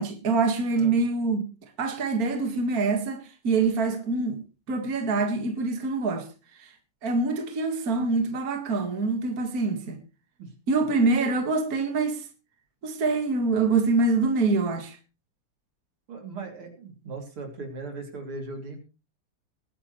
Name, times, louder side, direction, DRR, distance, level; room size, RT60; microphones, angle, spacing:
voice 1, 0.0-1.5 1.8-4.4 4.7-6.3 6.6-6.7 7.0-10.0 10.7-12.2 12.8-15.0, right 3 dB, 45° right, 2.2 m, -25 dB
voice 2, 16.1-18.8, right 3 dB, 80° right, 4.0 m, -38 dB
21.0 x 10.0 x 3.2 m
omnidirectional pair, 2.4 m